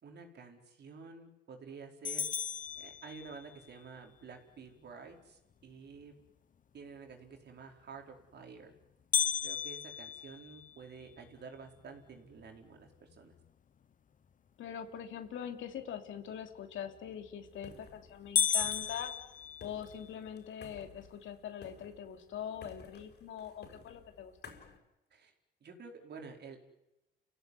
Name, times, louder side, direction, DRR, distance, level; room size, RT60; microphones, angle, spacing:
voice 1, 0.0-2.3 2.7-6.1 6.7-8.7 9.4-13.3 25.1-25.3 25.6-26.6, right 5 dB, 60° right, 3 dB, 4.7 m, -50 dB
sound 1, 2.0-3.6 9.1-11.3 11.8-11.9 12.4-12.5 13.1-13.5 17.1-17.5 17.9-18.0 18.4-20.1, left 7 dB, 40° left, 0.9 m, -34 dB
voice 2, 14.6-19.1 19.6-24.3, left 8 dB, 75° left, 6 dB, 3.2 m, -43 dB
sound 2, 17.4-24.8, left 5 dB, 60° left, 6.0 m, -55 dB
30.0 x 16.5 x 9.7 m, 0.95 s
cardioid pair, 90°, 20 cm